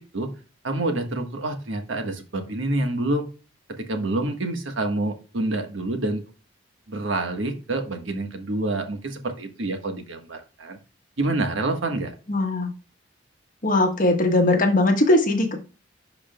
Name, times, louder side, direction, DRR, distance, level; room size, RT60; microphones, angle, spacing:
voice 1, 0.6-3.2 3.8-6.2 6.9-10.8 11.2-12.1, right 2 dB, 80° right, 5 dB, 1.4 m, -27 dB
voice 2, 12.3-12.7 13.6-15.6, left 2 dB, 45° left, 4 dB, 1.3 m, -20 dB
10.5 x 4.9 x 2.3 m, 0.34 s
head